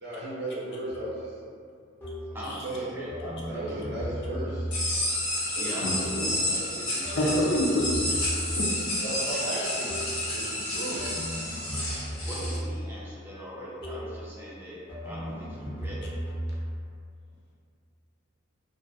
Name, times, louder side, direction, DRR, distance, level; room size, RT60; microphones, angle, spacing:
voice 1, 0.0-1.3 2.6-2.9 3.5-4.5 5.5-5.8 6.1-6.3 9.0-10.0 10.3-11.0, right 1 dB, 50° right, -7 dB, 0.6 m, -35 dB
sound 1, 0.9-1.1 2.0-2.4 3.1-5.0 5.9-6.4 7.0-8.8 9.9-10.3 11.0-12.9 13.8-14.2 14.9-16.7, equal, 10° left, 0.8 m, -36 dB
voice 2, 2.3-4.4 5.6-7.4 8.0-8.1 12.1-14.8 15.0-16.1, equal, 10° right, -8 dB, 0.4 m, -41 dB
sound 2, 4.7-12.6, left 1 dB, 90° left, 0.9 m, -30 dB
voice 3, 7.2-7.9 8.6-8.7 9.5-9.7, left 1 dB, 55° left, -4 dB, 0.4 m, -26 dB
2.5 x 2.3 x 2.3 m, 2.3 s
head